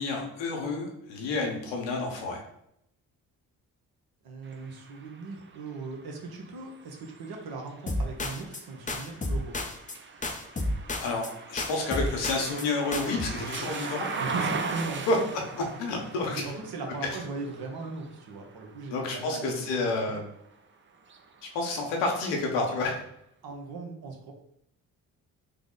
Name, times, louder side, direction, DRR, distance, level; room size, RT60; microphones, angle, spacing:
voice 1, 0.0-2.4 11.0-14.1 15.1-15.2 15.5-16.4 18.9-20.2 21.5-22.9, left 3 dB, 80° left, 1 dB, 0.9 m, -29 dB
voice 2, 4.2-9.6 14.2-15.1 16.3-20.2 23.4-24.3, right 3 dB, 60° right, 2 dB, 0.9 m, -38 dB
sound 1, 4.4-20.4 20.9-22.2, right 4 dB, 30° right, 0.5 m, -40 dB
sound 2, 7.9-8.6 8.9-10.0 10.2-11.3 11.6-12.7 12.9-13.3, left 1 dB, 20° left, 0.5 m, -32 dB
3.4 x 2.0 x 3.8 m, 0.76 s
hypercardioid pair, 45°, 42 cm